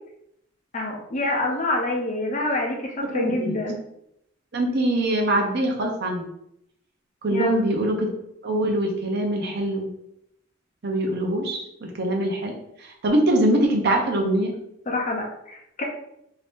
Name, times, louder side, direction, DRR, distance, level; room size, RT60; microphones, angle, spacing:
voice 1, 0.7-3.7 7.3-7.6 14.9-15.8, left 2 dB, 40° left, -1 dB, 0.6 m, -26 dB
voice 2, 3.1-3.5 4.5-6.3 7.2-8.1 8.4-9.9 10.8-12.5 12.8-14.5, right 1 dB, 55° right, 1 dB, 0.7 m, -23 dB
2.7 x 2.6 x 3.5 m, 0.77 s
head